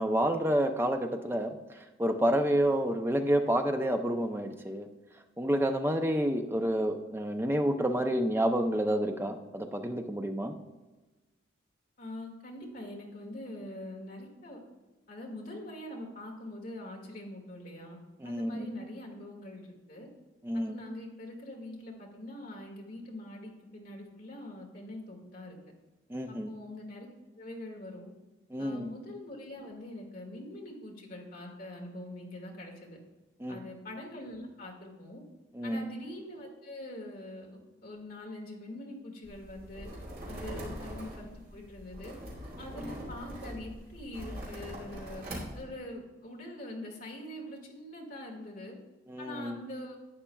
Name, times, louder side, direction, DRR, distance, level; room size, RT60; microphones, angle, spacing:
voice 1, 0.0-4.9 5.4-10.5 18.2-18.7 20.4-20.8 26.1-26.5 28.5-28.9 33.4-33.6 35.5-35.9 42.8-42.9 49.1-49.6, right 1 dB, 10° right, 6 dB, 0.4 m, -29 dB
voice 2, 12.0-14.6 15.1-18.0 18.2-20.1 20.5-25.6 26.3-27.1 27.4-28.1 28.6-33.0 33.5-35.2 35.6-39.9 40.3-42.1 42.6-45.3 45.6-48.8 49.2-50.0, left 1 dB, 45° left, 0 dB, 1.8 m, -44 dB
sound 1, 39.2-45.6, equal, 50° right, 2.5 m, -42 dB
11.5 x 8.6 x 2.3 m, 1.2 s
head